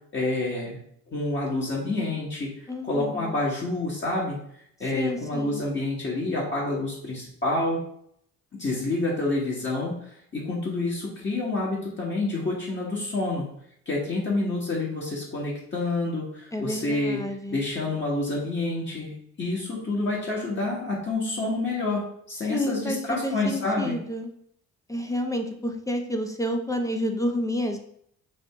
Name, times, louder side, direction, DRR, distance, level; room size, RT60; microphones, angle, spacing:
voice 1, 0.1-0.8 1.1-2.5 2.8-4.4 4.8-7.8 8.6-10.0 10.3-13.5 13.9-17.2 17.5-19.1 19.4-24.0, left 2 dB, 40° left, -4 dB, 1.5 m, -28 dB
voice 2, 2.7-3.4 4.9-5.6 16.5-17.6 22.5-24.3 24.9-27.8, left 1 dB, 10° left, 4 dB, 0.5 m, -29 dB
5.1 x 2.7 x 3.5 m, 0.68 s
cardioid pair, 90°, 30 cm